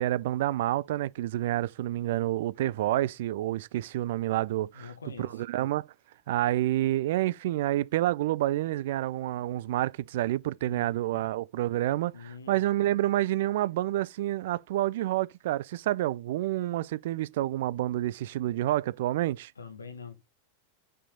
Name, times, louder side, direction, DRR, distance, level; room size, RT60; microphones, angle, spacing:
voice 1, 0.0-4.9 5.2-5.9 6.3-19.5, right 14 dB, 55° right, 0.3 m, -28 dB
voice 2, 4.7-5.4 10.6-11.3 12.1-12.6 19.6-20.2, left 5 dB, 75° left, 1.2 m, -45 dB
6.2 x 4.6 x 3.8 m
figure-of-eight pair, 90°, 0 cm